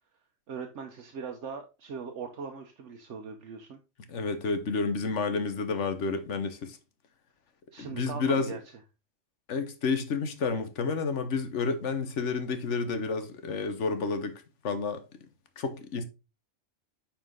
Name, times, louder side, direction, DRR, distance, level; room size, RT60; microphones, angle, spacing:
voice 1, 0.5-3.8 7.7-8.6, right 5 dB, 75° right, 1.2 m, -40 dB
voice 2, 4.1-6.8 7.8-8.6 9.5-15.0 15.6-16.0, left 4 dB, 75° left, 1.4 m, -30 dB
9.4 x 4.4 x 3.7 m
omnidirectional pair, 1.3 m